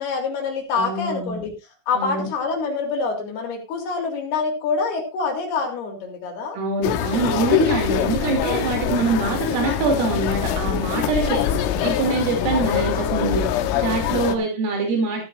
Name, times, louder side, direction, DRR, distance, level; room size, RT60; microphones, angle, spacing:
voice 1, 0.0-1.5 1.9-6.6 11.4-11.6 14.1-14.4, left 4 dB, 55° left, 1 dB, 4.9 m, -26 dB
voice 2, 0.7-1.4 2.0-2.3 6.5-13.5 13.8-15.2, right 4 dB, 75° right, 2 dB, 5.6 m, -24 dB
sound 1, 6.8-14.4, left 10 dB, 80° left, 3.5 m, -23 dB
15.5 x 13.0 x 2.6 m, 0.26 s
omnidirectional pair, 5.9 m